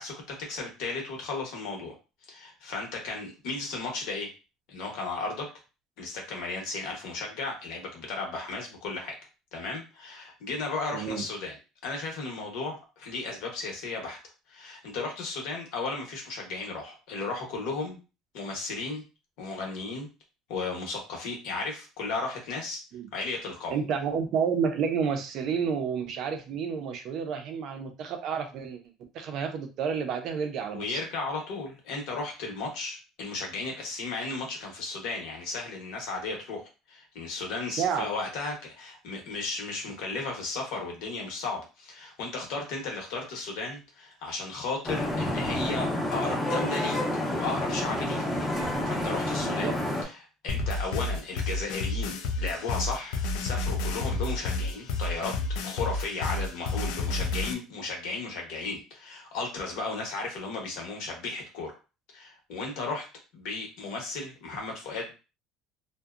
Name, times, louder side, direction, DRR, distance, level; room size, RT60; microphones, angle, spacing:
voice 1, 0.0-1.9 2.3-4.3 4.7-5.5 6.0-9.1 9.5-11.6 11.8-14.2 14.5-18.0 18.3-19.0 19.4-20.1 20.5-22.8 23.1-23.8 30.7-36.6 36.9-47.0 47.3-48.2 48.5-49.8 50.0-50.2 50.4-55.3 55.6-61.8 62.1-63.1 63.3-65.2, left 3 dB, 65° left, 1 dB, 0.9 m, -35 dB
voice 2, 10.9-11.2 22.9-23.1 23.7-28.8 29.1-31.0 37.7-38.1 49.4-49.7, right 6 dB, 45° right, 5 dB, 0.5 m, -30 dB
Vehicle horn car horn honking / Traffic noise roadway noise, 44.8-50.0, left 1 dB, 10° left, 0.6 m, -29 dB
sound 1, 50.5-57.5, left 3 dB, 85° left, 0.4 m, -30 dB
2.7 x 2.0 x 2.4 m, 0.31 s
cardioid pair, 175°, 0 cm